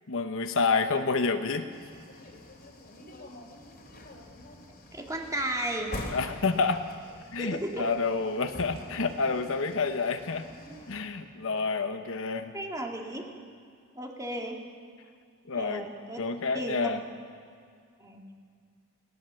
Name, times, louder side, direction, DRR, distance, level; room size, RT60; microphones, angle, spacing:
voice 1, 0.1-1.7 6.1-6.8 7.3-10.5 10.9-12.5 15.5-15.8 16.2-17.0, left 4 dB, 65° left, 7 dB, 1.0 m, -28 dB
sound 1, 1.7-11.0, left 1 dB, 45° left, 3.0 m, -45 dB
voice 2, 4.9-5.9 7.4-7.9 12.5-13.3 13.9-14.6 15.5-16.2 16.5-16.9 18.0-18.2, right 1 dB, 15° right, 0 dB, 2.5 m, -34 dB
19.5 x 19.0 x 7.1 m, 2.2 s
head